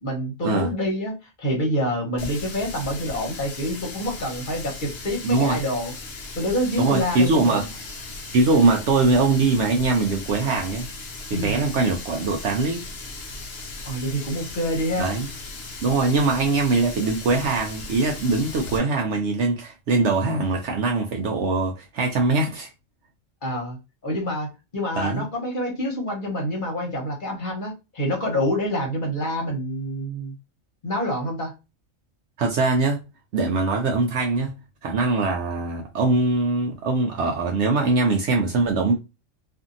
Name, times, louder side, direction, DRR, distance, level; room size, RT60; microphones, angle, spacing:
voice 1, 0.0-5.9 6.4-7.6 11.3-11.6 13.8-15.1 23.4-23.8 24.0-30.3 30.8-31.5, equal, 40° left, 1.1 m, -27 dB
Water tap faucet, 2.2-18.8, left 3 dB, 60° left, 0.9 m, -37 dB
voice 2, 5.2-5.6 6.8-7.7 8.3-10.9 11.3-12.9 15.0-15.3 15.8-22.7 25.0-25.3 32.4-33.0 33.3-34.6 34.8-38.9, right 3 dB, 70° right, 0.8 m, -22 dB
2.6 x 2.6 x 2.5 m
omnidirectional pair, 1.3 m